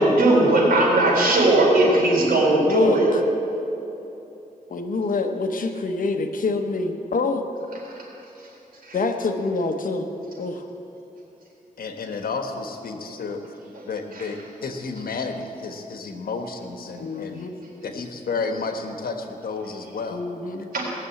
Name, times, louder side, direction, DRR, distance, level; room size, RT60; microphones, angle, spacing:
voice 1, 0.0-3.1 8.0-8.1 8.8-9.0 14.1-14.2 20.7-20.8, right 2 dB, 80° right, -3 dB, 3.9 m, -18 dB
voice 2, 2.5-3.2 4.7-7.4 8.9-10.1 10.4-10.7 17.0-17.5 20.1-20.7, left 3 dB, 65° left, 6 dB, 1.1 m, -26 dB
voice 3, 11.8-13.4 13.8-17.5 17.8-20.2, left 4 dB, 85° left, 5 dB, 1.3 m, -31 dB
18.0 x 6.9 x 8.5 m, 2.9 s
wide cardioid pair, 115°, 15 cm